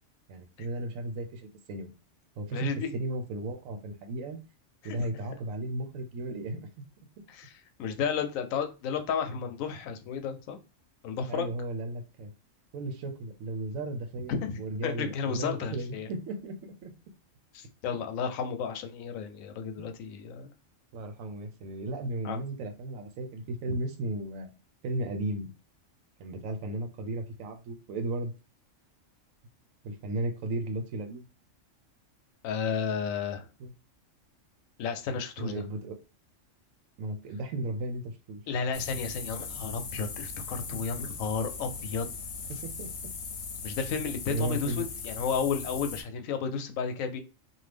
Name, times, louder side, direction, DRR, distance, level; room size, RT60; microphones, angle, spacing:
voice 1, 0.3-1.9 2.4-4.4 4.8-6.7 11.3-12.3 12.7-16.9 19.8-19.9 20.9-24.5 24.8-25.5 26.2-28.3 29.8-31.3 33.6-33.7 35.4-36.0 37.0-38.4 40.7-40.8 42.6-42.9 44.3-44.9, right 1 dB, 85° right, 6 dB, 1.0 m, -35 dB
voice 2, 2.5-2.9 4.8-5.1 7.3-10.6 11.0-11.5 14.3-16.1 17.5-20.5 22.2-22.4 23.7-23.8 32.4-33.5 34.8-35.6 38.5-42.1 43.6-47.2, left 6 dB, 90° left, 7 dB, 1.0 m, -32 dB
sound 1, 38.7-46.0, left 5 dB, 65° left, 0.9 m, -39 dB
2.7 x 2.3 x 3.3 m, 0.31 s
omnidirectional pair, 1.4 m